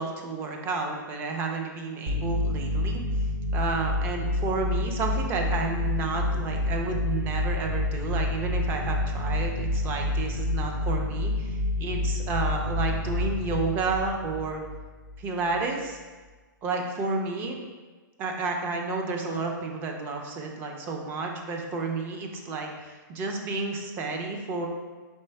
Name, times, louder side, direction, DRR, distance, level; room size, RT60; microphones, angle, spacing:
voice 1, 0.0-3.0 3.5-14.6 15.2-16.0 16.6-17.6 18.2-24.7, right 3 dB, 20° right, 2 dB, 0.4 m, -31 dB
sound 1, 2.1-15.2, left 2 dB, 40° right, 1.0 m, -28 dB
sound 2, 5.8-10.6, right 3 dB, 70° right, 1.3 m, -42 dB
4.4 x 3.4 x 3.3 m, 1.3 s
hypercardioid pair, 150°, 11 cm